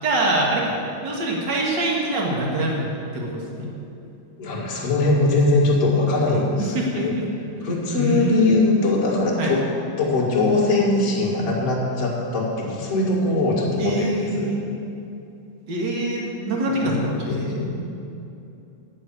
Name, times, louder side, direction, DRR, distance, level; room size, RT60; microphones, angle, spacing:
voice 1, 0.0-0.8 1.0-3.7 6.6-7.3 7.9-8.7 9.4-9.5 13.8-14.6 15.7-17.6, right 2 dB, 40° right, -2 dB, 1.9 m, -24 dB
voice 2, 4.4-7.1 7.6-9.6 10.0-14.5 16.8-17.8, left 2 dB, 30° left, -4 dB, 1.8 m, -21 dB
9.5 x 6.5 x 8.6 m, 2.7 s
omnidirectional pair, 3.8 m